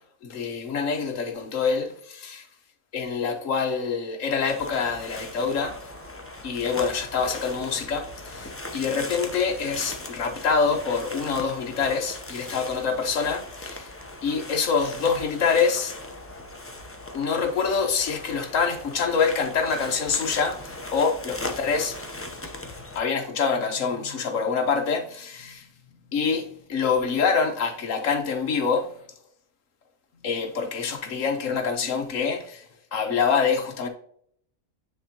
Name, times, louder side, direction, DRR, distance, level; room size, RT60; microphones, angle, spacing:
voice 1, 0.2-2.5 2.9-5.8 6.4-13.9 14.2-15.9 17.1-20.6 20.9-22.0 22.9-25.7 26.1-28.9 30.2-32.6 32.9-33.9, left 5 dB, 65° left, 1.3 m, -25 dB
sound 1, 4.5-23.0, left 2 dB, 15° left, 0.4 m, -39 dB
9.7 x 3.8 x 2.8 m
omnidirectional pair, 1.5 m